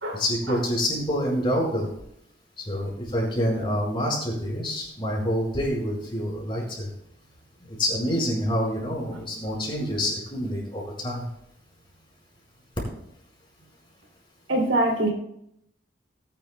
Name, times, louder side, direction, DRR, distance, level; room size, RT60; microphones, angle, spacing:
voice 1, 0.1-1.9 2.6-6.9 7.6-11.3, equal, 25° left, -3 dB, 4.9 m, -27 dB
voice 2, 14.5-15.1, right 1 dB, 90° right, 1 dB, 3.1 m, -23 dB
19.5 x 10.5 x 2.3 m, 0.75 s
head